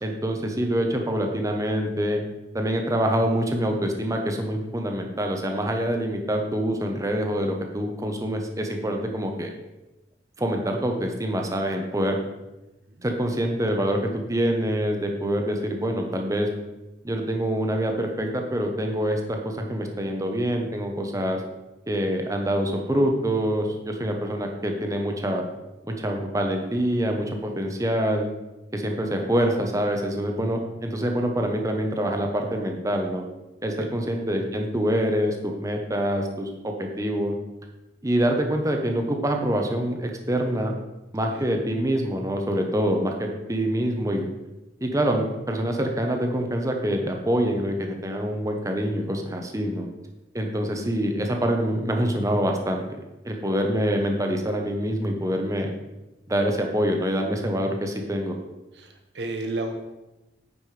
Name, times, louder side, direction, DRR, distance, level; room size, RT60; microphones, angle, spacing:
voice 1, 0.0-2.2 2.5-9.5 10.4-12.2 13.0-16.5 17.0-21.4 21.9-25.4 25.9-28.3 28.7-33.3 33.6-37.4 38.0-40.7 41.1-44.3 44.8-49.9 50.3-53.0 53.2-55.7 56.3-58.4, equal, 20° right, 3 dB, 0.9 m, -25 dB
voice 2, 58.7-59.7, right 2 dB, 65° right, 4 dB, 1.0 m, -33 dB
9.5 x 5.2 x 4.9 m, 1.0 s
head